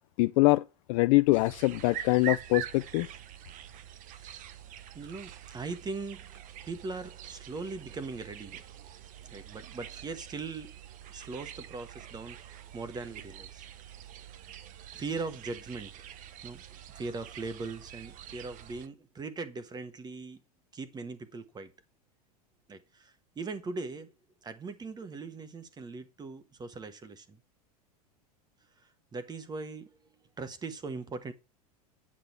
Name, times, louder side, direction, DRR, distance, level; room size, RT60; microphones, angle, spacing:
voice 1, 0.2-0.6 0.9-3.1, left 22 dB, 55° left, 0.5 m, -24 dB
sound 1, 1.3-18.9, right 10 dB, 40° right, 1.0 m, -45 dB
voice 2, 4.9-8.6 9.3-10.8 11.1-13.6 14.9-15.9 16.4-20.4 20.7-21.7 22.7-24.1 24.4-27.4 29.1-29.9 30.4-31.3, right 4 dB, 20° right, 1.4 m, -40 dB
8.7 x 6.7 x 4.4 m
hypercardioid pair, 105°, 20 cm